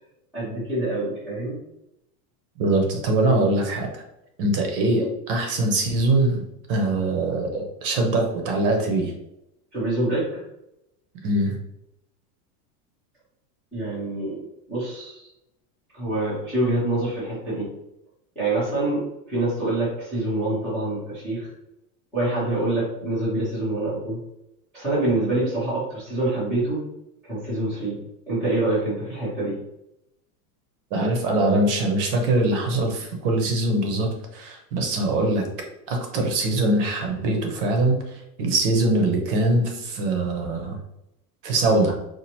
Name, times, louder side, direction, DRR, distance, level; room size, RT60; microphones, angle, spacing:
voice 1, 0.3-1.6 9.7-10.4 13.7-15.3 15.9-17.7 18.4-21.5 22.1-24.2 24.7-26.8 27.3-28.0 28.3-29.6, right 2 dB, 5° left, -17 dB, 0.3 m, -26 dB
voice 2, 2.6-3.9 4.4-6.4 6.7-9.1 11.2-11.6 30.9-35.5 35.9-40.8 41.4-41.9, right 2 dB, 35° right, 2 dB, 0.6 m, -22 dB
4.3 x 2.5 x 2.8 m, 0.84 s
supercardioid pair, 170°, 46 cm